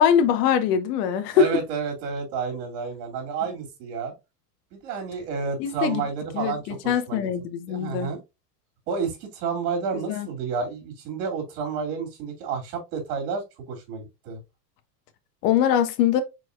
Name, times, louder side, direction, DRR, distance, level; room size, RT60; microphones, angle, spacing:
voice 1, 0.0-1.5 5.6-6.0 6.3-6.6 6.9-8.1 10.1-10.3 15.4-16.2, left 8 dB, 75° left, 1.2 m, -22 dB
voice 2, 1.3-4.1 4.7-7.2 7.7-8.2 8.9-14.4, right 5 dB, 65° right, 2.7 m, -30 dB
4.7 x 4.4 x 2.6 m
supercardioid pair, 125°, 48 cm